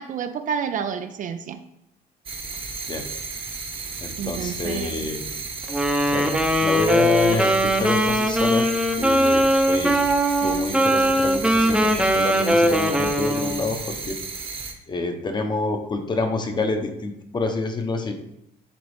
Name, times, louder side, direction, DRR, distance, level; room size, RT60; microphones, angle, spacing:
voice 1, 0.0-1.6 4.2-5.1, right 7 dB, 50° right, 9 dB, 0.5 m, -29 dB
sound 1, 2.3-14.7, right 4 dB, 30° right, 1.1 m, -34 dB
voice 2, 4.0-5.3 6.1-8.7 9.0-10.0 10.4-14.2 14.9-18.2, left 3 dB, 25° left, 5 dB, 1.0 m, -28 dB
Wind instrument woodwind instrument, 5.7-13.7, equal, 5° right, 0.8 m, -20 dB
10.5 x 3.8 x 3.5 m, 0.81 s
cardioid pair, 110°, 17 cm